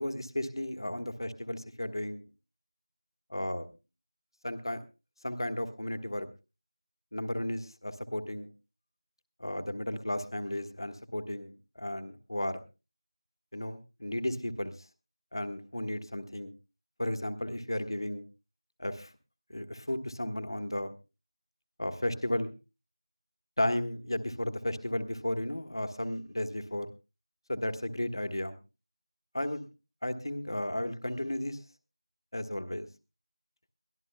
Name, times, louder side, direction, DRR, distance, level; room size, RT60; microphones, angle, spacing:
voice 1, 0.0-2.2 3.3-3.7 4.4-4.8 5.2-6.3 7.1-8.5 9.4-12.6 13.5-14.7 15.3-16.5 17.0-18.2 18.8-19.1 19.5-20.9 21.8-22.5 23.6-26.9 27.5-28.6 29.3-29.7 30.0-31.6 32.3-32.9, left 1 dB, 60° left, 9 dB, 1.5 m, -34 dB
23.0 x 14.0 x 2.3 m, 0.29 s
figure-of-eight pair, 175°, 3 cm